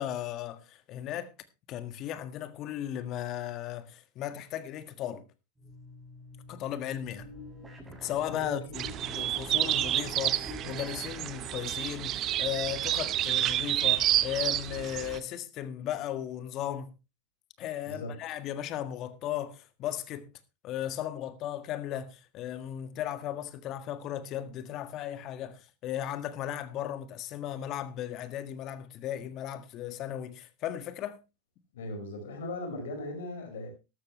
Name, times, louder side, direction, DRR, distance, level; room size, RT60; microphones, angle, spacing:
voice 1, 0.0-1.3 1.7-5.2 6.5-7.3 8.0-16.9 17.6-20.3 20.6-31.2, left 11 dB, 45° left, 1.6 m, -36 dB
sound 1, 5.6-11.3, left 1 dB, 15° right, 7.0 m, -46 dB
voice 2, 8.3-8.6 17.9-18.2 31.7-33.7, left 2 dB, 75° left, 5.0 m, -38 dB
sound 2, 8.7-15.2, right 12 dB, 40° right, 0.8 m, -29 dB
13.0 x 13.0 x 3.1 m
hypercardioid pair, 100°, 0 cm